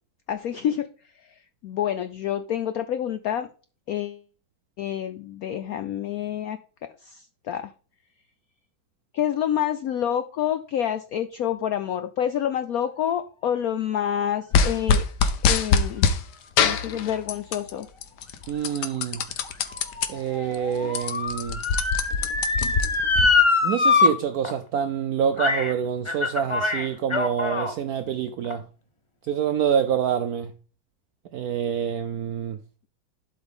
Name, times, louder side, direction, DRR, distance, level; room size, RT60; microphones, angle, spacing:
voice 1, 0.3-0.9 1.1-3.5 3.9-4.2 4.8-6.6 7.0-7.7 9.1-15.0 15.5-16.1 16.6-17.9, left 10 dB, 80° left, 0.8 m, -28 dB
sound 1, 14.5-16.2 16.6-17.7 18.0-20.1 20.5-20.6 20.8-23.3, left 6 dB, 65° left, 1.3 m, -23 dB
voice 2, 18.5-19.3 20.1-21.6 23.6-28.7 29.3-30.5 31.3-32.6, right 8 dB, 75° right, 0.8 m, -26 dB
Motor vehicle (road) / Siren, 18.9-24.1 24.4-24.5 25.4-25.7 26.1-27.7 28.4-28.5, left 4 dB, 35° left, 0.4 m, -24 dB
11.5 x 5.3 x 3.6 m
omnidirectional pair, 2.2 m